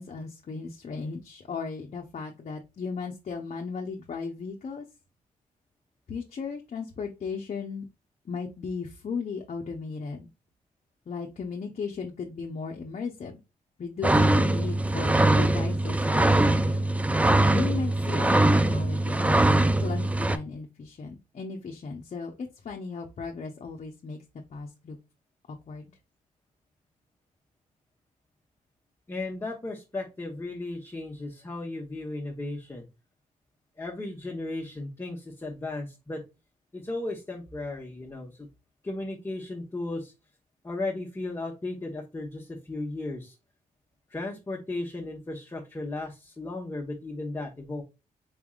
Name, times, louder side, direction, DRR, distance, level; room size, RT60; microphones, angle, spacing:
voice 1, 0.0-4.8 6.1-7.8 8.3-10.3 11.1-13.4 13.8-16.8 17.5-19.4 19.8-24.2 24.5-25.0 25.7-25.9, left 5 dB, 50° left, 0 dB, 0.8 m, -36 dB
sound 1, 14.0-20.4, right 2 dB, 10° right, 0.4 m, -22 dB
voice 2, 29.1-32.8 33.8-36.2 36.7-38.5 38.8-40.1 40.6-43.3 44.1-47.8, left 2 dB, 20° left, -2 dB, 1.1 m, -35 dB
4.2 x 3.4 x 2.3 m, 0.27 s
cardioid pair, 85°, 15 cm